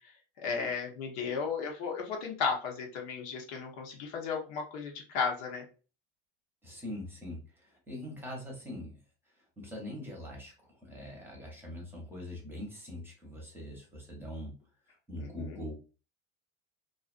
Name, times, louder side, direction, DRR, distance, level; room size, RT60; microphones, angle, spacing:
voice 1, 0.4-5.6 15.2-15.6, left 5 dB, 80° left, 1 dB, 0.9 m, -34 dB
voice 2, 6.6-9.0 9.6-14.6 15.1-15.7, left 1 dB, 5° right, -1 dB, 0.8 m, -42 dB
2.5 x 2.3 x 2.4 m, 0.34 s
cardioid pair, 140°, 30 cm